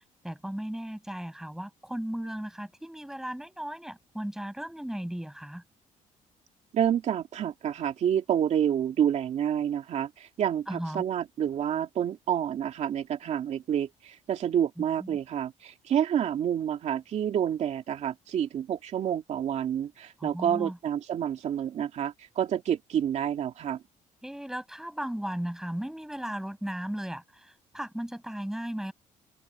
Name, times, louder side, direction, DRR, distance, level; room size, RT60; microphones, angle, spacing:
voice 1, 0.2-5.6 10.7-11.0 15.0-15.2 20.2-20.8 24.2-27.5 27.7-28.9, right 1 dB, 5° right, 6.3 m, -36 dB
voice 2, 6.7-23.8, right 9 dB, 60° right, 2.4 m, -28 dB
cardioid pair, 120°, 13 cm